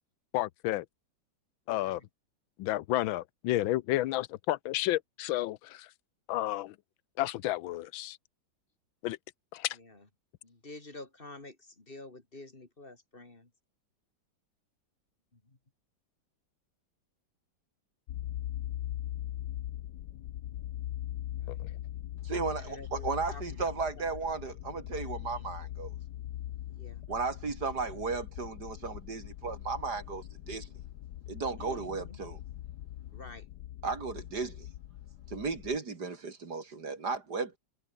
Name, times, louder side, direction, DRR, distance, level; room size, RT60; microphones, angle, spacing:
voice 1, 0.3-0.8 1.7-2.0 2.6-5.9 6.3-6.7 7.2-8.2 9.0-9.2 9.5-9.8 21.5-21.7, left 15 dB, 90° left, 1.5 m, -31 dB
voice 2, 1.7-2.1 9.7-10.1 10.4-13.5 15.3-15.6 21.3-21.7 22.6-23.6 23.9-24.0 25.1-25.5 26.7-27.0 31.6-32.2 33.1-33.5, left 2 dB, 25° left, 2.9 m, -49 dB
sound 1, 18.1-35.8, left 13 dB, 65° left, 1.3 m, -41 dB
voice 3, 22.2-25.9 27.1-30.7 31.3-32.4 33.8-34.7 35.3-37.6, right 4 dB, 55° right, 3.3 m, -35 dB
omnidirectional pair, 2.1 m